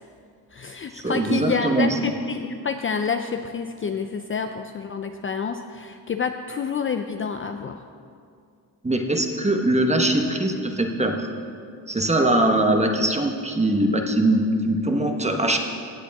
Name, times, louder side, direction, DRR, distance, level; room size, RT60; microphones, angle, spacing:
voice 1, 0.5-7.8, left 6 dB, 30° left, 6 dB, 0.5 m, -28 dB
voice 2, 1.0-1.9 8.8-11.3 11.9-15.6, right 1 dB, 15° right, 4 dB, 1.2 m, -21 dB
16.5 x 8.1 x 3.6 m, 2.3 s
cardioid pair, 80°, 40 cm